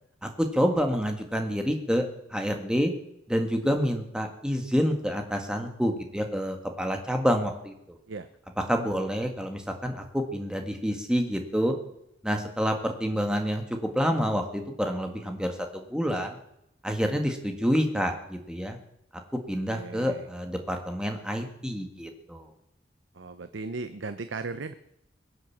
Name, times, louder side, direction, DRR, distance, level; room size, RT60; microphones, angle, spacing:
voice 1, 0.2-2.0 2.3-2.9 3.3-8.0 8.6-11.7 12.2-16.4 16.8-18.8 19.3-22.5, equal, 5° right, 4 dB, 1.7 m, -28 dB
voice 2, 19.7-20.3 23.1-24.7, right 3 dB, 85° right, 10 dB, 0.7 m, -36 dB
22.0 x 8.0 x 7.2 m, 0.80 s
head